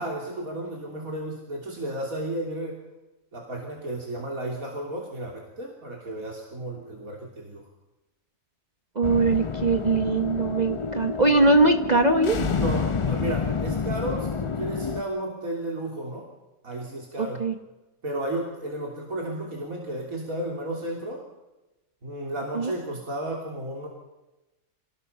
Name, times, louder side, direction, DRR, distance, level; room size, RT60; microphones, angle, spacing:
voice 1, 0.0-2.8 3.3-7.6 12.3-16.3 16.6-17.4 18.0-21.2 22.0-23.9, right 1 dB, 85° right, -1 dB, 3.6 m, -33 dB
sound 1, 9.0-15.0, left 5 dB, 35° left, 0.5 m, -29 dB
voice 2, 9.0-12.4 17.2-17.5 22.5-22.7, right 3 dB, 35° right, 6 dB, 1.2 m, -21 dB
27.0 x 17.5 x 5.7 m, 1.0 s
omnidirectional pair, 1.4 m